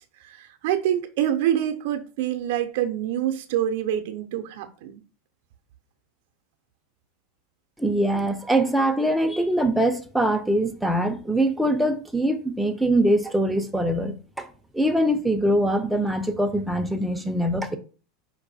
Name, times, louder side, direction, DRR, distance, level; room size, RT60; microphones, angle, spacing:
voice 1, 0.2-5.0, right 11 dB, 65° right, 0.5 m, -26 dB
voice 2, 7.8-14.5 14.7-17.8, right 1 dB, 5° right, 0.5 m, -23 dB
4.6 x 2.6 x 4.0 m
supercardioid pair, 135°, 0 cm